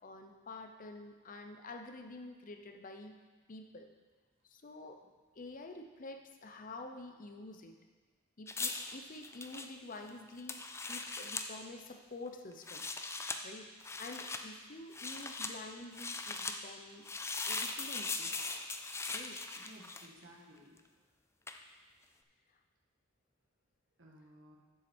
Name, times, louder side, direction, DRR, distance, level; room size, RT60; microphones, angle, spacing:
voice 1, 0.0-3.2 3.5-3.9 4.5-5.0 5.3-7.7 8.4-12.9 13.4-13.7 14.0-17.1 17.5-18.3 19.1-19.4, left 2 dB, 40° left, 5 dB, 0.7 m, -48 dB
sound 1, 8.5-11.5 12.5-13.4 13.8-14.4 14.9-15.5 15.9-16.6 17.0-20.2 21.5-21.6, left 3 dB, 15° left, 0.4 m, -40 dB
voice 2, 19.5-20.9 24.0-24.6, equal, 65° right, -2 dB, 1.5 m, -57 dB
7.4 x 7.3 x 4.4 m, 1.4 s
head